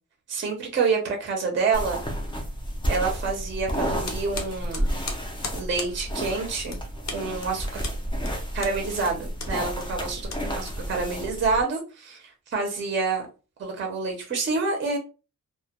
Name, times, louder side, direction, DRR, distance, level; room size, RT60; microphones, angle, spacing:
voice 1, 0.3-2.0 2.9-4.9 5.5-6.8 7.1-7.8 8.5-10.3 10.5-13.3 13.6-15.0, right 4 dB, 35° right, 2 dB, 0.5 m, -27 dB
sound 1, 1.7-11.6, equal, 15° left, 0.4 m, -31 dB
sound 2, 4.0-11.2, left 4 dB, 55° left, 0.6 m, -38 dB
2.2 x 2.1 x 2.8 m, 0.32 s
wide cardioid pair, 165°, 33 cm